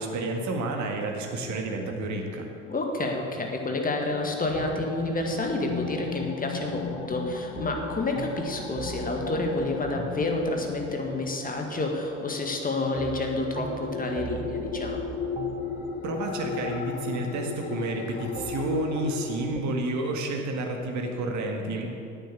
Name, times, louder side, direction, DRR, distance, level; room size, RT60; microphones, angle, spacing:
voice 1, 0.0-2.5 16.0-21.9, right 2 dB, 50° right, 2 dB, 1.9 m, -30 dB
voice 2, 2.7-15.0, left 2 dB, 20° left, 2 dB, 1.9 m, -29 dB
sound 1, 3.8-19.5, left 7 dB, 55° left, 0.8 m, -37 dB
sound 2, 4.5-19.6, right 6 dB, 20° right, 0.4 m, -42 dB
8.9 x 7.2 x 8.2 m, 2.6 s
hypercardioid pair, 65°, 38 cm